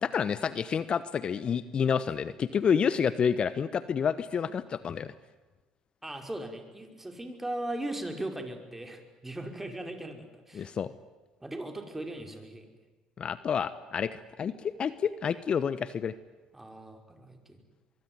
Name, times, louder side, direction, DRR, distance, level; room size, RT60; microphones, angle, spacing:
voice 1, 0.0-5.1 10.5-10.9 13.2-16.1, left 7 dB, 45° left, 15 dB, 1.1 m, -29 dB
voice 2, 6.0-10.7 11.4-12.7 16.5-17.6, right 1 dB, 10° right, 5 dB, 5.4 m, -38 dB
23.5 x 23.5 x 9.6 m, 1.2 s
hypercardioid pair, 65°, 2 cm